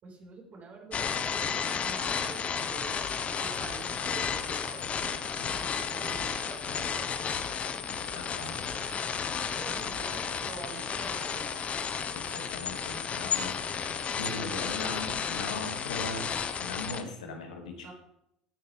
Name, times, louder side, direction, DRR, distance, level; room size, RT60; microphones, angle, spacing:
voice 1, 0.0-3.0 3.3-7.7 9.6-11.7 17.8-17.9, right 3 dB, 40° right, 0 dB, 4.8 m, -47 dB
sound 1, 0.9-17.0, left 6 dB, 35° left, 1.1 m, -33 dB
sound 2, 3.0-11.7, left 7 dB, 55° left, 1.3 m, -51 dB
voice 2, 8.1-8.6 12.1-16.3 16.6-17.9, left 3 dB, 75° left, 3 dB, 2.3 m, -39 dB
17.0 x 9.7 x 3.5 m, 0.78 s
figure-of-eight pair, 70°, 4 cm